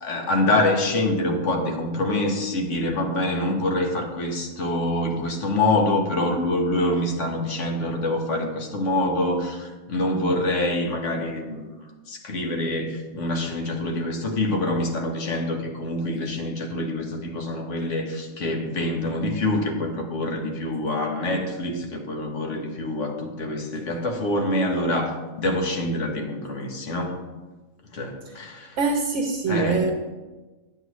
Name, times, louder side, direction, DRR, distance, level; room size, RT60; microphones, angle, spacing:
voice 1, 0.0-11.7 12.1-27.2 27.9-28.8 29.5-29.8, left 1 dB, 60° left, 2 dB, 1.5 m, -25 dB
voice 2, 28.8-29.9, right 4 dB, 60° right, 4 dB, 1.0 m, -23 dB
9.4 x 7.9 x 3.1 m, 1.2 s
omnidirectional pair, 1.5 m